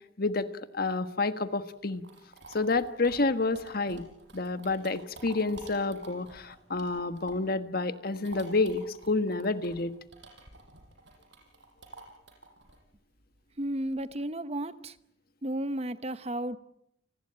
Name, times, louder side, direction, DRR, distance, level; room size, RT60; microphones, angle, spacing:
voice 1, 0.2-2.0 2.5-4.1 4.3-9.9, left 3 dB, 55° left, 10 dB, 1.5 m, -29 dB
sound 1, 1.7-7.6 7.9-14.2, right 2 dB, 65° right, 6.7 m, -50 dB
voice 2, 13.6-15.0 15.4-16.6, right 1 dB, 35° right, 13 dB, 1.0 m, -33 dB
29.5 x 19.5 x 8.9 m, 0.78 s
head